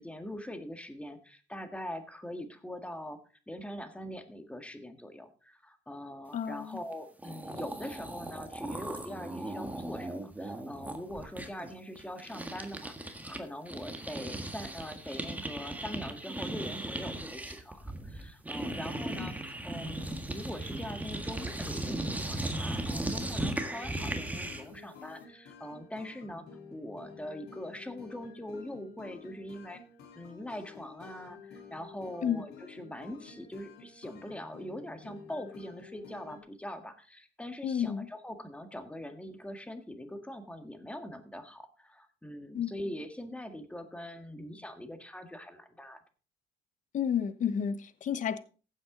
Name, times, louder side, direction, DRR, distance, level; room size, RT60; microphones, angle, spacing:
voice 1, 0.0-3.2 3.5-26.4 26.7-29.8 30.1-46.0, left 1 dB, 5° left, 1.7 m, -43 dB
voice 2, 6.3-6.8 19.2-19.3 32.2-32.4 37.6-38.1 42.5-42.7 46.9-48.4, left 8 dB, 50° left, 1.1 m, -31 dB
sound 1, 6.9-7.0 7.2-13.4 13.7-24.8, right 1 dB, 10° right, 1.6 m, -37 dB
sound 2, 23.5-36.4, left 5 dB, 85° left, 3.4 m, -51 dB
15.0 x 8.0 x 3.9 m
cardioid pair, 110°, 17 cm